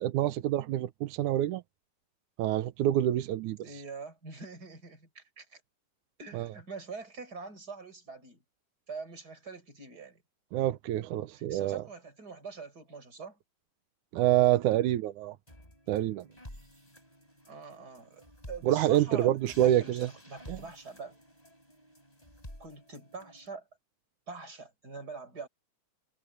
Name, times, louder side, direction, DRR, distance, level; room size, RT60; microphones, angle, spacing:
voice 1, 0.0-1.6 2.4-3.6 6.3-6.5 10.5-11.8 14.1-15.4 15.9-16.3 18.6-20.1 20.5-20.6, right 13 dB, 80° right, 2.3 m, -27 dB
voice 2, 3.6-5.6 6.2-8.4 8.9-10.2 11.3-13.4 17.5-21.2 22.6-23.7 24.3-25.5, right 4 dB, 30° right, 5.8 m, -44 dB
sound 1, 15.5-23.5, left 1 dB, 10° left, 7.6 m, -52 dB
omnidirectional pair, 3.5 m